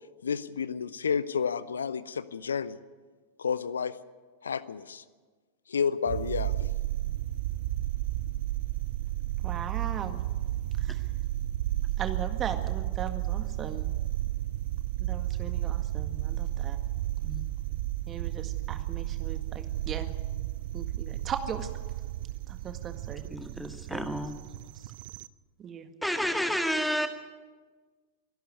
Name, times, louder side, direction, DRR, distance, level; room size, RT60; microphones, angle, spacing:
voice 1, 0.2-2.8 3.4-3.9 4.4-5.0 5.7-6.7, left 6 dB, 70° left, 17 dB, 0.7 m, -30 dB
sound 1, 6.0-25.3, right 15 dB, 50° right, 0.5 m, -32 dB
voice 2, 9.4-10.3 10.8-11.0 12.0-13.9 15.0-16.8 18.1-20.1 20.7-21.7 22.5-23.2 23.9-24.0 25.6-25.9, right 7 dB, 25° right, 7 dB, 1.9 m, -38 dB
voice 3, 23.3-24.4 26.0-27.1, equal, ahead, 7 dB, 1.8 m, -30 dB
24.0 x 11.5 x 9.7 m, 1.4 s
figure-of-eight pair, 90°, 0 cm